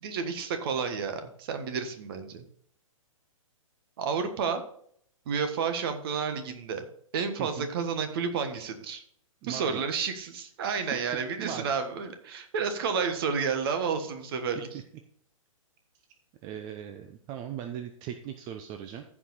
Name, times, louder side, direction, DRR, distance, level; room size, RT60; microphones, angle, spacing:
voice 1, 0.0-2.4 4.0-4.6 5.3-6.9 7.1-9.0 9.4-14.7, right 6 dB, 45° right, 8 dB, 1.4 m, -31 dB
voice 2, 9.4-9.8 10.8-11.0 11.4-11.8 16.4-19.0, right 9 dB, 25° right, 7 dB, 0.6 m, -39 dB
14.5 x 5.0 x 4.1 m, 0.64 s
figure-of-eight pair, 115°, 18 cm